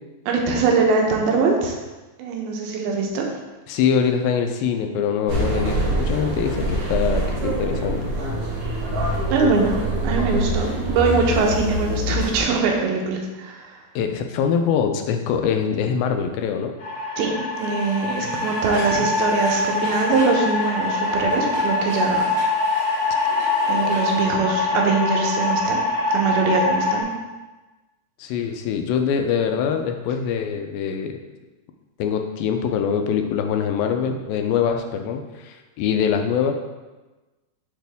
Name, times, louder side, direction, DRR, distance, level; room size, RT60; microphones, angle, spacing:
voice 1, 0.3-1.8 2.2-3.3 9.3-13.8 17.2-22.4 23.7-25.8 26.1-27.1, right 4 dB, 85° right, 1 dB, 2.7 m, -22 dB
voice 2, 3.7-8.0 14.0-16.7 19.0-19.1 28.2-31.2 32.0-36.5, left 7 dB, 80° left, 5 dB, 2.3 m, -23 dB
sound 1, 5.3-12.4, right 1 dB, 65° right, 1.5 m, -25 dB
sound 2, 16.8-27.0, left 2 dB, 60° left, 1.8 m, -24 dB
sound 3, 17.5-24.2, right 1 dB, 40° right, 2.5 m, -40 dB
8.2 x 3.6 x 3.4 m, 1.2 s
omnidirectional pair, 4.3 m